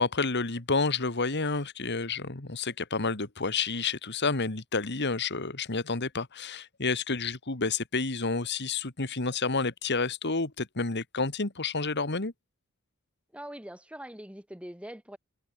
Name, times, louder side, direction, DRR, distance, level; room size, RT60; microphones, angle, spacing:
voice 1, 0.0-12.3, left 4 dB, 50° left, 2.2 m, -30 dB
voice 2, 13.3-15.2, right 1 dB, 5° right, 4.4 m, -43 dB
head